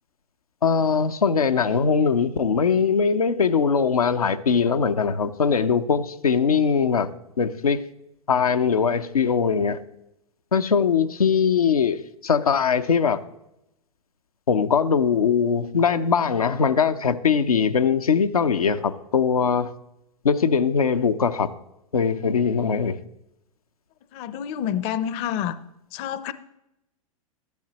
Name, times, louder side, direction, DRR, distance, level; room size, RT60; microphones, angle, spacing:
voice 1, 0.6-7.1 7.4-7.8 8.3-9.8 10.5-13.2 14.5-19.7 20.2-21.5 21.9-23.0, left 6 dB, 85° left, 9 dB, 0.6 m, -21 dB
voice 2, 24.1-25.5 25.9-26.3, left 10 dB, 35° left, 15 dB, 0.5 m, -28 dB
13.0 x 10.5 x 2.9 m, 0.86 s
hypercardioid pair, 110°, 18 cm